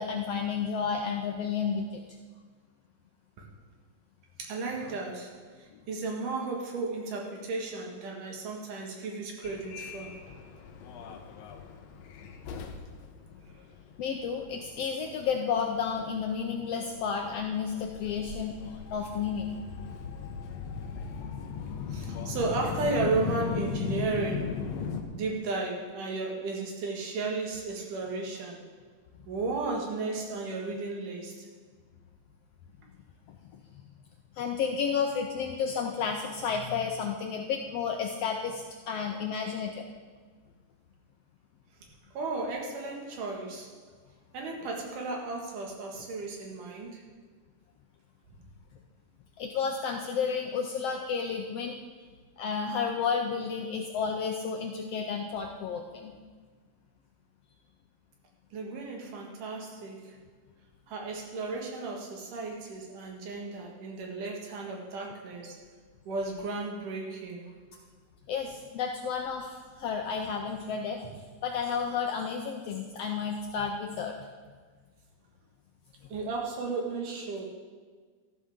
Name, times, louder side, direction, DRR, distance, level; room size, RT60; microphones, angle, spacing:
voice 1, 0.0-2.0 5.7-5.8 14.0-18.6 18.9-19.5 33.3-33.4 34.3-39.8 49.4-51.7 52.4-56.1 68.3-71.0 71.4-74.1, left 6 dB, 85° left, 2 dB, 1.3 m, -31 dB
voice 2, 4.4-10.2 21.9-24.8 25.1-28.7 29.3-31.5 42.1-43.8 44.3-47.0 58.5-60.2 60.9-65.6 66.1-67.5 76.1-77.5, right 3 dB, 75° right, 0 dB, 3.3 m, -34 dB
Subway metro underground, 9.4-25.0, left 6 dB, 70° left, 1.7 m, -38 dB
13.5 x 12.5 x 3.6 m, 1.5 s
omnidirectional pair, 3.7 m